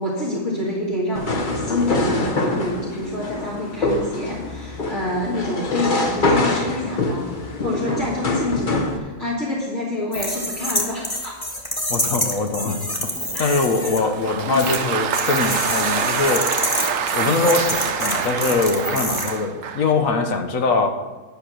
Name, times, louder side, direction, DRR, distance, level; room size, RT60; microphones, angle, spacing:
voice 1, 0.0-11.4 13.3-14.0 14.5-14.8 18.8-19.0, left 1 dB, 60° left, -6 dB, 2.2 m, -27 dB
sound 1, 1.1-9.0, left 2 dB, 40° left, 1.1 m, -24 dB
sound 2, 10.1-14.0 14.5-14.8 15.1-19.3, left 1 dB, 15° left, 1.5 m, -27 dB
voice 2, 11.9-16.5 17.1-20.9, left 3 dB, 85° left, 5 dB, 1.4 m, -22 dB
Applause, 13.8-19.9, right 7 dB, 75° right, 1.1 m, -25 dB
11.5 x 6.0 x 6.2 m, 1.3 s
omnidirectional pair, 1.4 m